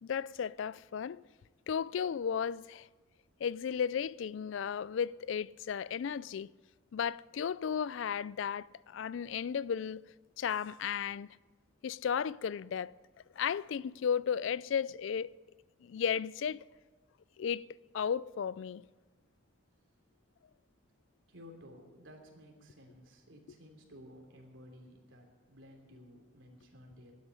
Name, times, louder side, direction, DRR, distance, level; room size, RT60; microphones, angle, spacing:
voice 1, 0.0-1.2 1.7-2.9 3.4-6.5 6.9-10.0 10.4-11.3 11.8-12.9 13.4-15.3 15.8-16.6 17.4-17.6 17.9-18.8, left 7 dB, 75° left, 0.3 m, -34 dB
voice 2, 21.3-27.1, equal, 85° right, 3.1 m, -55 dB
12.5 x 10.0 x 9.9 m
head